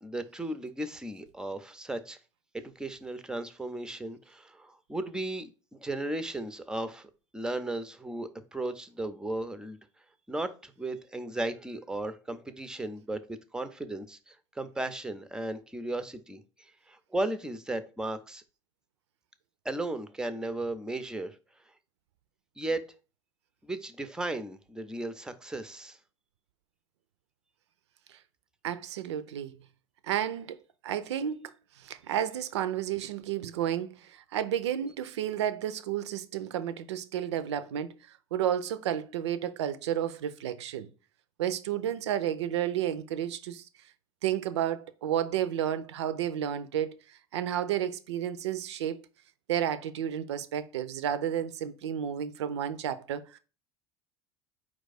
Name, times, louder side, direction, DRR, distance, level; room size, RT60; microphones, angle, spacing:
voice 1, 0.0-2.2 2.5-9.8 10.3-18.4 19.6-21.4 22.6-22.8 23.6-26.0, right 2 dB, 5° right, 0.5 m, -35 dB
voice 2, 28.6-29.6 30.0-30.6 30.8-31.5 31.8-37.9 38.3-40.9 41.4-43.6 44.2-47.0 47.3-49.0 49.5-53.4, right 10 dB, 70° right, 0.5 m, -31 dB
4.6 x 2.4 x 4.0 m
figure-of-eight pair, 75°, 15 cm